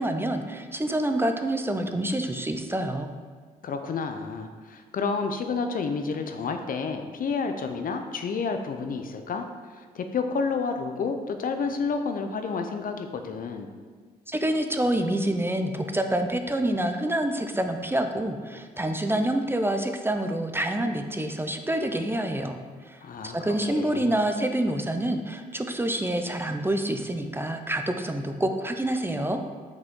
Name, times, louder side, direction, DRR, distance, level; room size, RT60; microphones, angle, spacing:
voice 1, 0.0-3.1 14.3-29.4, right 1 dB, 15° right, 6 dB, 0.6 m, -27 dB
voice 2, 3.6-9.4 9.8-13.7 23.0-23.4 23.7-24.2, left 5 dB, 55° left, 6 dB, 0.6 m, -30 dB
5.9 x 5.2 x 3.7 m, 1.5 s
supercardioid pair, 60°, 17 cm